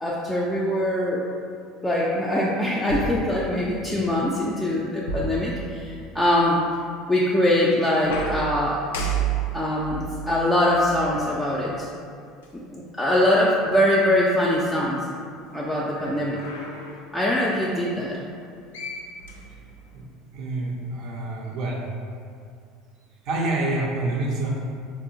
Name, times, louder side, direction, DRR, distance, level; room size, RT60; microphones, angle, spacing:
voice 1, 0.0-1.3 1.8-6.6 7.1-8.9 9.5-11.9 12.5-15.1 15.5-16.4 17.1-18.2, left 1 dB, 10° left, -6 dB, 0.4 m, -23 dB
sound 1, 2.9-4.0 5.1-6.2 8.0-11.6 12.4-12.5 15.8-17.1 18.4-18.5 18.7-20.0, right 5 dB, 85° left, 0.3 m, -32 dB
voice 2, 20.3-21.8 23.2-24.5, right 2 dB, 65° right, -2 dB, 0.5 m, -27 dB
3.5 x 2.0 x 2.6 m, 2.3 s
hypercardioid pair, 85°, 0 cm